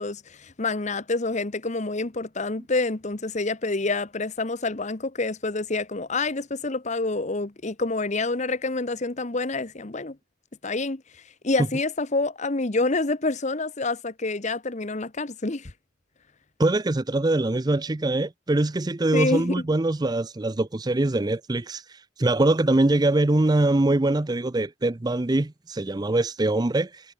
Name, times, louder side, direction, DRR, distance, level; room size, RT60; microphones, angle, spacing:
voice 1, 0.0-10.2 10.6-11.0 11.4-15.7 19.1-19.6, left 3 dB, 35° left, 1.1 m, -27 dB
voice 2, 16.6-21.8 22.2-27.0, right 2 dB, 20° right, 0.5 m, -23 dB
head